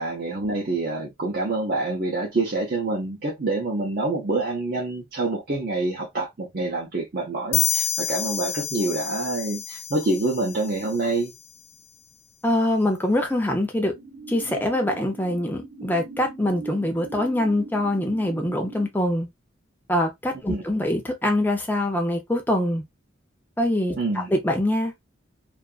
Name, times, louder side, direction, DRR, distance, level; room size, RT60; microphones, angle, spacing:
voice 1, 0.0-11.3 20.5-20.6 24.0-24.3, right 2 dB, 50° right, 0.7 m, -26 dB
sound 1, 7.5-11.1, left 9 dB, 55° left, 0.5 m, -28 dB
voice 2, 12.4-13.9 14.3-19.3 19.9-22.8 23.6-24.9, left 1 dB, 10° left, 0.6 m, -24 dB
sound 2, 13.8-18.9, right 4 dB, 85° right, 1.1 m, -40 dB
2.6 x 2.4 x 2.4 m
head